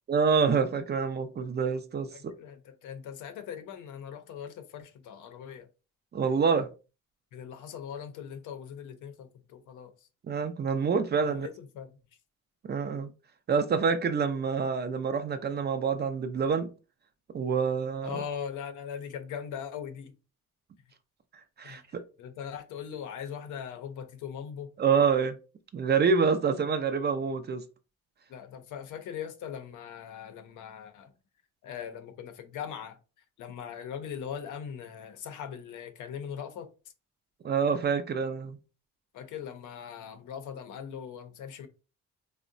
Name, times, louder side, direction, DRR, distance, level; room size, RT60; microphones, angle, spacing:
voice 1, 0.1-2.1 6.1-6.7 10.2-11.5 12.6-13.1 13.5-16.7 17.3-18.2 21.6-22.0 24.8-25.3 25.7-27.6 37.4-38.6, right 5 dB, 35° right, 0.4 m, -27 dB
voice 2, 2.1-5.7 7.3-9.9 11.2-11.9 18.0-20.1 21.6-21.8 22.2-24.7 28.3-31.1 31.6-33.0 33.4-36.7 39.1-41.7, left 8 dB, 80° left, 0.6 m, -40 dB
3.5 x 2.1 x 2.5 m
cardioid pair, 90°, 30 cm